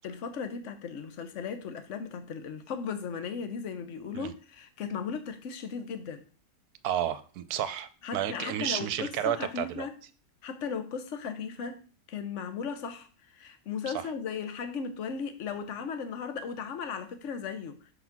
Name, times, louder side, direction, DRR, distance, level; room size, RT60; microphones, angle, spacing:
voice 1, 0.0-6.2 8.0-9.9 10.4-11.8 12.1-17.8, left 6 dB, 55° left, 1.1 m, -36 dB
voice 2, 6.8-9.8 13.9-14.1, right 10 dB, 75° right, 1.1 m, -31 dB
6.0 x 3.9 x 5.9 m
omnidirectional pair, 1.7 m